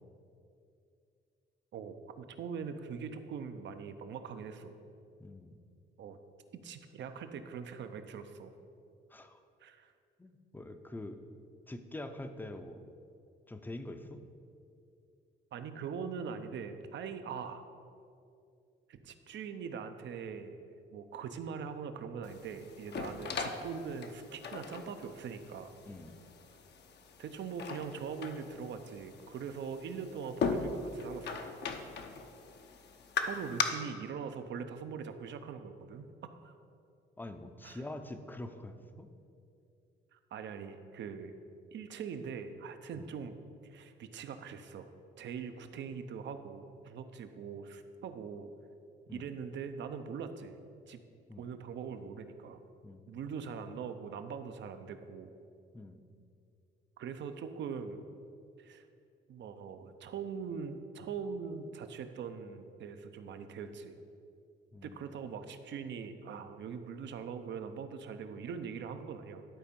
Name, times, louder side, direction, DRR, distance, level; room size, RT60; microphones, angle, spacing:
voice 1, 1.7-4.7 6.0-6.2 6.5-8.5 9.6-9.9 15.5-17.6 18.9-20.6 20.9-25.7 27.2-31.5 33.2-36.5 37.6-37.8 40.1-41.3 41.7-43.4 43.6-44.9 45.2-48.5 49.1-50.6 50.9-51.0 51.4-52.6 53.1-55.3 57.0-58.0 58.6-58.8 59.3-64.0 64.8-69.4, right 6 dB, 65° right, 8 dB, 0.7 m, -42 dB
voice 2, 5.2-5.5 9.1-9.4 10.2-11.2 11.7-12.8 13.5-14.2 22.9-23.1 25.9-26.1 37.2-39.1 42.9-43.1 49.1-49.3 51.3-51.5 52.8-53.0 55.7-56.0 64.7-64.9, left 1 dB, 10° left, 7 dB, 0.6 m, -45 dB
sound 1, 22.2-33.6, left 5 dB, 60° left, 0.8 m, -39 dB
11.0 x 4.2 x 5.3 m, 2.5 s
cardioid pair, 90°, 20 cm